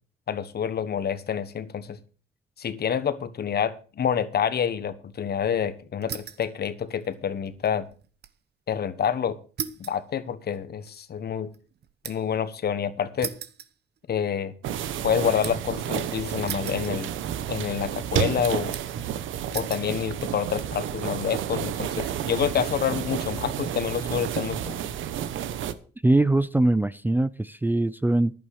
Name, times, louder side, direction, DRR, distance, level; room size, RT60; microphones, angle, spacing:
voice 1, 0.3-2.0 2.6-7.9 8.7-9.4 9.8-11.5 12.0-13.3 14.1-14.5 15.0-17.1 17.5-18.7 19.5-24.8, left 8 dB, 55° left, 14 dB, 1.3 m, -28 dB
sound 1, 6.0-6.5 6.9-8.4 8.7-8.8 9.6-12.4 13.2-14.3 14.7-15.7 16.5-17.4 17.6-18.2 18.7-19.1 19.5-19.9 20.6-21.0, right 8 dB, 55° right, 1.1 m, -38 dB
sound 2, 14.6-25.7, right 10 dB, 75° right, 1.0 m, -31 dB
voice 2, 26.0-28.3, right 2 dB, 10° right, 16 dB, 0.5 m, -22 dB
11.0 x 8.7 x 6.3 m, 0.39 s
cardioid pair, 90°, 20 cm